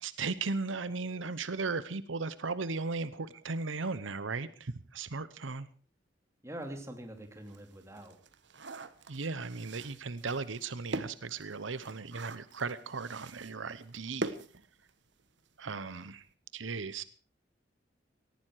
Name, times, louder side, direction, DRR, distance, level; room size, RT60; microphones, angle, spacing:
voice 1, 0.0-5.7 9.1-14.4 15.6-16.3 16.5-17.0, right 4 dB, 80° right, 15 dB, 0.9 m, -36 dB
voice 2, 6.4-8.2, right 1 dB, 15° right, 5 dB, 2.6 m, -44 dB
sound 1, 6.7-6.8 7.2-15.3 15.6-15.7 16.0-16.2, right 2 dB, 65° right, 1.3 m, -43 dB
18.5 x 14.5 x 4.7 m, 0.39 s
head